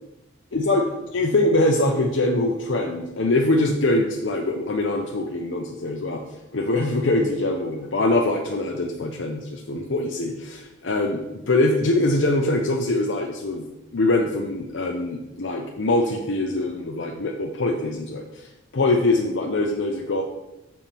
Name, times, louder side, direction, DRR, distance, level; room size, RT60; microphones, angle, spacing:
voice 1, 0.5-0.8 1.1-6.2 6.5-13.6 13.9-18.5 18.7-20.2, left 2 dB, 65° left, 1 dB, 0.7 m, -23 dB
7.2 x 4.3 x 5.8 m, 0.96 s
head